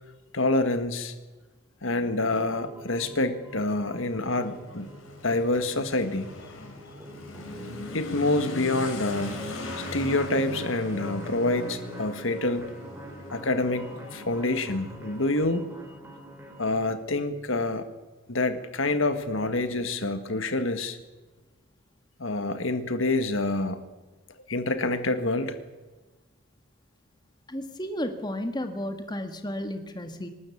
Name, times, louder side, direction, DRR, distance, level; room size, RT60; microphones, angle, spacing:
voice 1, 0.3-1.1 1.8-4.9 5.2-6.3 7.9-9.4 9.8-12.7 13.1-15.7 16.6-17.8 18.3-21.0 22.2-23.8 24.5-25.6, left 2 dB, 70° left, 9 dB, 1.7 m, -27 dB
sound 1, 2.5-16.8, equal, 10° right, 3.4 m, -45 dB
Motorcycle / Accelerating revving vroom, 3.5-15.8, left 1 dB, 90° left, 5.9 m, -40 dB
voice 2, 27.5-30.3, left 1 dB, 20° left, 6 dB, 1.7 m, -33 dB
26.5 x 13.0 x 8.5 m, 1.2 s
head